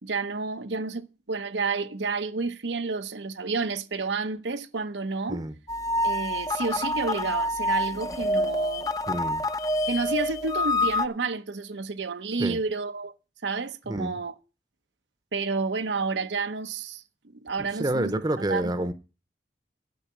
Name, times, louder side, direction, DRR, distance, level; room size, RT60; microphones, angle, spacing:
voice 1, 0.0-5.4 6.0-8.9 9.9-13.1 13.4-14.3 15.3-17.0 17.4-18.9, right 4 dB, 90° right, 0.9 m, -30 dB
sound 1, 5.7-11.1, left 1 dB, 20° left, 0.6 m, -27 dB
voice 2, 9.1-9.4 12.4-12.6 13.9-14.2 17.6-18.9, right 1 dB, 25° right, 0.8 m, -28 dB
12.0 x 5.7 x 8.4 m
head